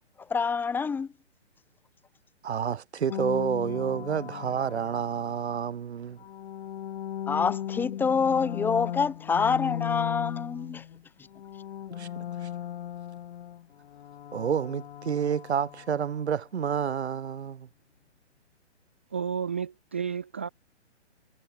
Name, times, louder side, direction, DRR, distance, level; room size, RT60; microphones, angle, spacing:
voice 1, 0.2-1.1 7.3-10.8, left 5 dB, 5° left, 1.0 m, -27 dB
voice 2, 2.4-6.2 12.0-12.1 12.4-12.5 14.3-17.7, right 8 dB, 65° right, 2.5 m, -29 dB
sound 1, 3.1-5.5 6.1-11.0 11.3-16.2, left 10 dB, 55° left, 0.5 m, -37 dB
voice 3, 19.1-20.5, right 7 dB, 10° right, 0.4 m, -31 dB
hypercardioid pair, 140°, 36 cm